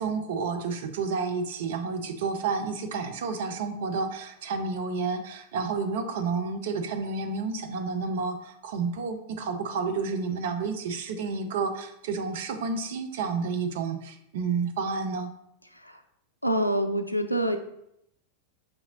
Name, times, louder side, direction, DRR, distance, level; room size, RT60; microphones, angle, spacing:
voice 1, 0.0-15.3, right 4 dB, 55° right, 6 dB, 0.5 m, -30 dB
voice 2, 16.4-17.6, right 1 dB, 90° left, 7 dB, 0.3 m, -26 dB
5.7 x 2.8 x 2.7 m, 0.78 s
figure-of-eight pair, 90°, 0 cm